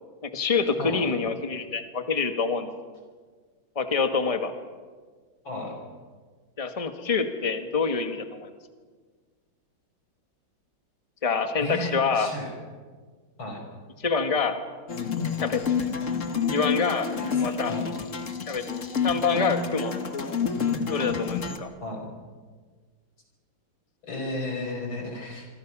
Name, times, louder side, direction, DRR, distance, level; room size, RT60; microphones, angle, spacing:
voice 1, 0.2-2.7 3.7-4.5 6.6-8.5 11.2-12.3 14.0-14.6 15.4-15.6 16.5-17.1 17.4-17.7 18.5-18.6 19.0-19.9 20.9-21.7, left 5 dB, 20° left, 7 dB, 1.5 m, -26 dB
voice 2, 0.8-1.1 5.4-5.7 11.6-12.5 13.4-13.6 17.1-17.9 19.3-19.5 21.8-22.1 24.0-25.5, left 2 dB, 80° left, 2 dB, 6.3 m, -34 dB
sound 1, 14.9-21.6, left 6 dB, 40° left, 1.7 m, -29 dB
27.5 x 23.5 x 6.2 m, 1.5 s
omnidirectional pair, 2.1 m